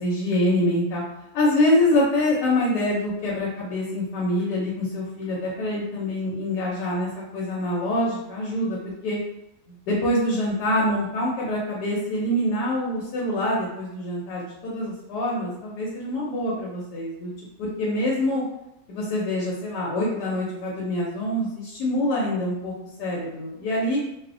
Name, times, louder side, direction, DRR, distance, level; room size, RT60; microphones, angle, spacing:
voice 1, 0.0-1.0 1.3-8.8 9.0-9.2 9.7-17.3 17.6-18.4 18.9-22.7 23.0-24.0, left 1 dB, 90° left, -4 dB, 1.2 m, -25 dB
2.7 x 2.0 x 2.5 m, 0.84 s
omnidirectional pair, 1.7 m